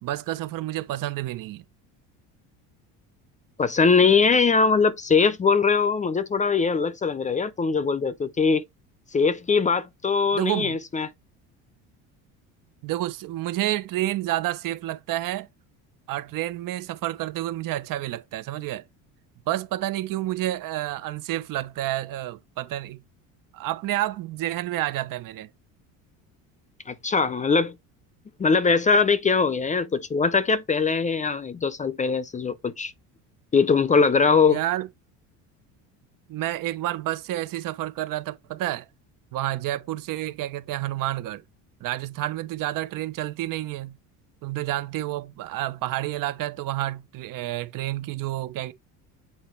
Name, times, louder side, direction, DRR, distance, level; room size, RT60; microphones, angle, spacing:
voice 1, 0.0-1.6 10.3-10.8 12.8-15.5 16.1-18.8 19.5-23.0 23.5-25.5 34.4-34.9 36.3-38.9 39.3-41.4 41.8-44.0 44.4-48.7, right 15 dB, 60° right, 0.9 m, -29 dB
voice 2, 3.6-8.6 9.1-11.1 26.9-27.8 28.4-32.9 33.5-34.6, left 5 dB, 20° left, 0.6 m, -21 dB
7.7 x 4.3 x 3.2 m
supercardioid pair, 105°, 37 cm